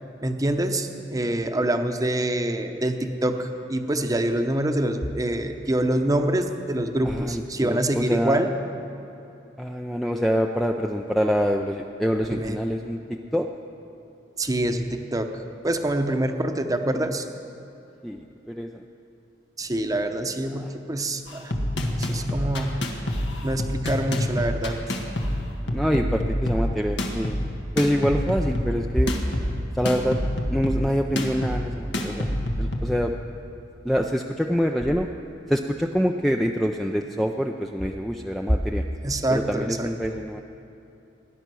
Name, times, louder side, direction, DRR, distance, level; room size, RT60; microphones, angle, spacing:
voice 1, 0.2-8.5 12.3-12.6 14.4-17.2 19.6-21.5 22.0-22.8 23.4-24.7 39.0-39.9, right 1 dB, 20° right, 6 dB, 0.9 m, -25 dB
voice 2, 7.0-8.4 9.6-13.5 16.9-17.1 18.0-18.8 20.5-20.7 25.7-27.4 27.7-29.4 29.7-30.2 30.5-32.3 32.6-33.1 33.8-35.1 35.5-38.9 39.3-40.4, equal, ahead, 2 dB, 0.4 m, -25 dB
sound 1, 21.3-33.0, left 1 dB, 80° left, 1.5 m, -27 dB
18.5 x 10.0 x 6.2 m, 2.8 s
head